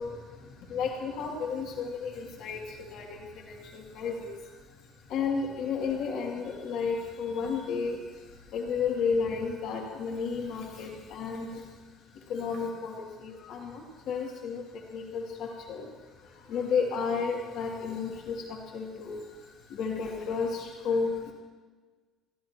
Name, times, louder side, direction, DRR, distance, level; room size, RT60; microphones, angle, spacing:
voice 1, 0.0-4.8 5.1-11.7 12.1-15.9 16.2-21.3, left 5 dB, 60° left, -2 dB, 2.6 m, -33 dB
27.5 x 13.0 x 3.0 m, 1.4 s
cardioid pair, 155°, 0 cm